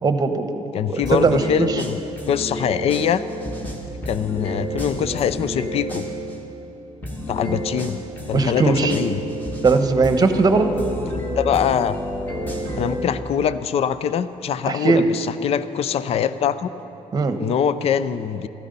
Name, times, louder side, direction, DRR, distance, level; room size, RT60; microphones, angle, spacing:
voice 1, 0.0-0.6 0.9-1.8 7.5-7.6 8.3-8.9 9.6-10.7 14.7-15.1 17.1-17.4, right 4 dB, 30° right, 8 dB, 1.0 m, -19 dB
voice 2, 0.7-2.0 2.3-3.2 4.1-6.1 7.3-8.0 8.3-9.2 11.3-12.0 12.8-16.7 17.4-18.5, left 8 dB, 50° left, 14 dB, 0.5 m, -23 dB
sound 1, 1.0-6.4 7.0-13.0, equal, 15° left, 1.9 m, -30 dB
15.5 x 13.0 x 5.4 m, 3.0 s
cardioid pair, 125°, 13 cm